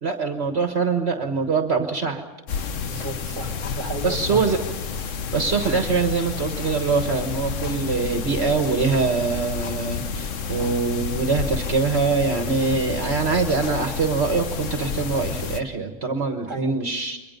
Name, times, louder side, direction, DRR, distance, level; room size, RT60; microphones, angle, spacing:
voice 1, 0.0-2.2 4.0-4.6 5.3-17.2, right 4 dB, 55° right, 5 dB, 1.6 m, -23 dB
sound 1, 2.5-15.6, left 6 dB, 75° left, 1.4 m, -30 dB
voice 2, 2.8-4.4 12.5-12.7 16.5-16.7, right 2 dB, 20° right, 3 dB, 2.5 m, -33 dB
28.5 x 23.0 x 5.3 m, 1.0 s
omnidirectional pair, 1.3 m